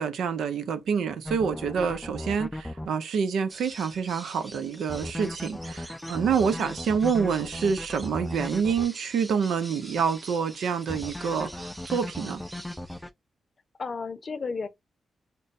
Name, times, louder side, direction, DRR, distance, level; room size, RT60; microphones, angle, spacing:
voice 1, 0.0-12.4, right 6 dB, 85° right, 0.6 m, -27 dB
sound 1, 1.3-2.9 4.9-8.9 10.9-13.1, left 1 dB, 15° left, 0.3 m, -36 dB
sound 2, 3.5-13.1, right 1 dB, 15° right, 0.7 m, -45 dB
voice 2, 13.8-14.7, left 4 dB, 50° left, 0.7 m, -33 dB
5.3 x 2.2 x 2.4 m
cardioid pair, 65°, 0 cm